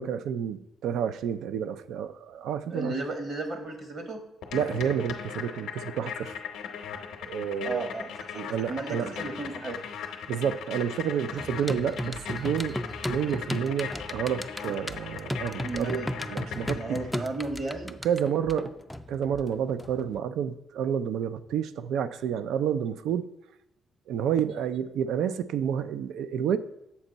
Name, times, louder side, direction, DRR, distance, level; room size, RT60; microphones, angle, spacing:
voice 1, 0.0-2.9 4.5-6.4 7.3-7.9 8.3-9.1 10.3-12.8 13.1-16.0 16.3-17.0 18.0-18.7 19.1-23.3 24.1-26.6, right 8 dB, 80° right, 12 dB, 0.3 m, -29 dB
voice 2, 2.7-4.2 7.6-8.1 8.6-9.8 15.6-16.1 16.7-17.9, right 2 dB, 45° right, 5 dB, 1.2 m, -34 dB
sound 1, 4.4-17.2, left 7 dB, 85° left, 0.7 m, -39 dB
sound 2, 11.4-20.2, left 1 dB, 5° left, 0.3 m, -36 dB
7.2 x 4.4 x 3.9 m, 0.84 s
cardioid pair, 90°, 0 cm